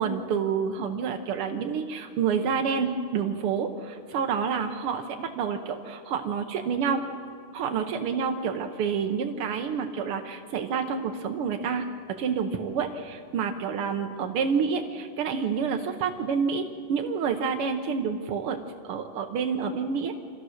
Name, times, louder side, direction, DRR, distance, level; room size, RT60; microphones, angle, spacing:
voice 1, 0.0-7.1 7.5-18.6 18.9-20.2, right 6 dB, 80° right, 5 dB, 1.2 m, -28 dB
26.0 x 15.5 x 6.5 m, 2.3 s
omnidirectional pair, 3.7 m